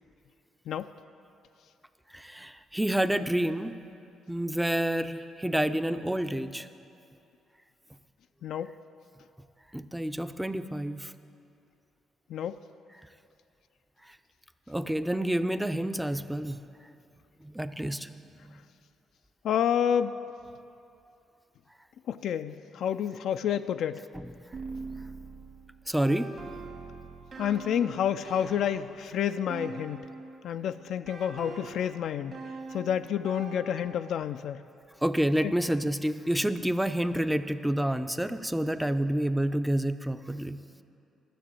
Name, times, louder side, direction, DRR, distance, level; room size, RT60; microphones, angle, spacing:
voice 1, 2.1-3.8 4.3-6.7 9.7-11.1 14.7-16.6 17.4-18.5 24.1-24.2 25.9-26.3 35.0-40.6, right 1 dB, 5° right, 11 dB, 0.5 m, -29 dB
voice 2, 8.4-8.7 12.3-12.6 19.4-20.2 22.1-24.1 27.4-30.1 30.4-32.4 32.7-34.6 35.4-35.5, left 9 dB, 75° left, 10 dB, 0.3 m, -29 dB
sound 1, 24.5-30.5 31.1-34.3, right 4 dB, 55° right, 2.0 m, -43 dB
12.5 x 6.8 x 8.6 m, 2.7 s
cardioid pair, 90°, 0 cm